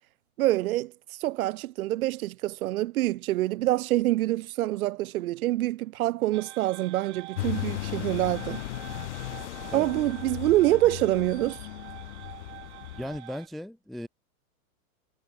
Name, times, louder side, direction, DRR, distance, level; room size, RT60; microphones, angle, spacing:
voice 1, 0.4-0.9 1.2-8.6 9.7-11.7, right 16 dB, 75° right, 0.6 m, -26 dB
sound 1, 6.3-13.5, right 16 dB, 50° right, 2.4 m, -46 dB
sound 2, 7.4-13.2, left 16 dB, 55° left, 0.5 m, -36 dB
voice 2, 13.0-14.1, left 1 dB, ahead, 0.5 m, -36 dB
supercardioid pair, 160°, 43 cm